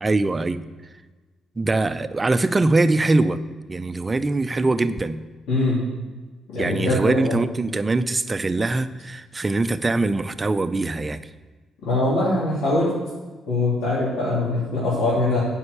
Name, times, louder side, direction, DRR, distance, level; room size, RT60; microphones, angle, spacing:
voice 1, 0.0-0.6 1.6-3.4 3.7-5.2 6.6-11.2, right 2 dB, 25° right, 12 dB, 0.5 m, -22 dB
voice 2, 5.5-5.8 6.5-7.4 11.8-12.9 13.5-15.4, left 2 dB, 80° left, -10 dB, 3.1 m, -22 dB
9.7 x 5.6 x 6.8 m, 1.3 s
cardioid pair, 90°, 0 cm